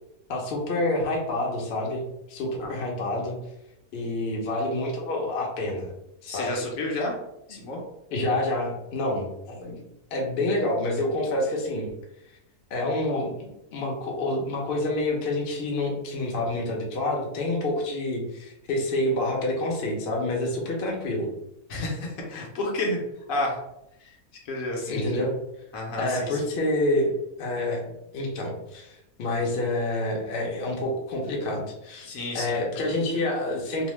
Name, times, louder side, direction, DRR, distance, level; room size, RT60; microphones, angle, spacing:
voice 1, 0.3-2.0 2.3-3.4 3.9-5.9 6.2-6.5 7.5-7.6 8.1-9.8 10.1-11.9 12.7-21.3 24.8-25.4 26.0-27.8 28.1-32.1 32.3-33.9, left 1 dB, 55° left, -1 dB, 0.7 m, -28 dB
voice 2, 6.3-7.1 7.5-7.8 21.7-23.0 23.3-23.6 24.0-24.1 24.4-25.2 25.7-26.4 32.0-32.9, left 1 dB, 70° left, 0 dB, 1.1 m, -30 dB
2.8 x 2.0 x 3.0 m, 0.85 s
omnidirectional pair, 1.5 m